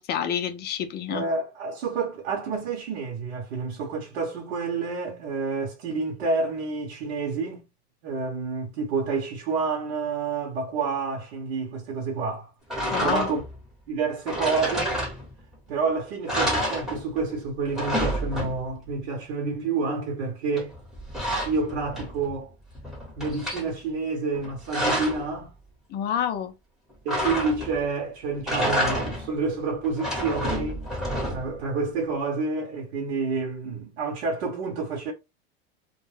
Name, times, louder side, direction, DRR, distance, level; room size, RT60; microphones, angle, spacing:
voice 1, 0.0-1.3 12.9-13.3 25.9-26.5, left 8 dB, 30° left, 0.5 m, -28 dB
voice 2, 1.1-7.6 8.0-12.5 13.0-13.4 13.9-15.0 15.7-20.7 21.4-22.5 23.2-25.5 27.0-30.9 31.3-35.1, right 4 dB, 70° right, 1.0 m, -29 dB
sound 1, 12.7-13.6 14.3-15.5 15.9-16.0 16.3-17.3 17.6-18.9 20.6-22.3 22.7-23.7 24.3-25.3 27.1-27.9 28.3-29.4 29.8-31.6, equal, ahead, 1.0 m, -29 dB
2.3 x 2.2 x 3.2 m
supercardioid pair, 125°, 32 cm